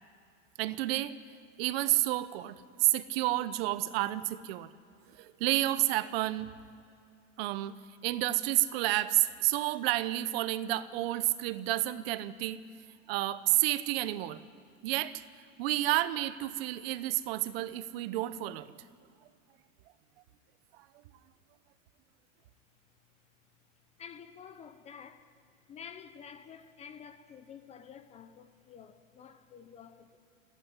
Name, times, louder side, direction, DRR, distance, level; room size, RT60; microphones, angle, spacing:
voice 1, 0.6-1.2 1.6-4.7 5.2-6.5 7.4-7.7 8.0-12.6 13.1-14.4 14.8-15.2 15.6-18.7, right 16 dB, 50° right, 0.8 m, -30 dB
voice 2, 24.0-25.3 25.7-30.2, left 7 dB, 15° left, 0.7 m, -50 dB
20.5 x 16.0 x 10.0 m
supercardioid pair, 160°, 39 cm